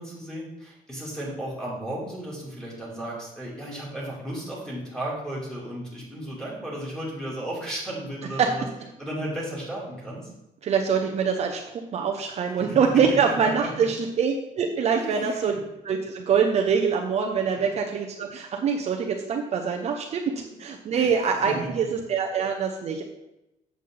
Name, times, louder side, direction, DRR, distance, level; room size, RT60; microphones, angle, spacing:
voice 1, 0.0-8.7 9.0-10.3 12.4-12.5 13.1-13.7 14.9-15.6 17.6-17.7 20.3-20.5 20.9-21.1 21.4-21.8, right 1 dB, 5° left, -6 dB, 2.7 m, -34 dB
voice 2, 10.6-15.5 15.8-23.0, right 6 dB, 45° right, 2 dB, 0.7 m, -24 dB
7.7 x 7.1 x 3.8 m, 0.92 s
cardioid pair, 155°, 15 cm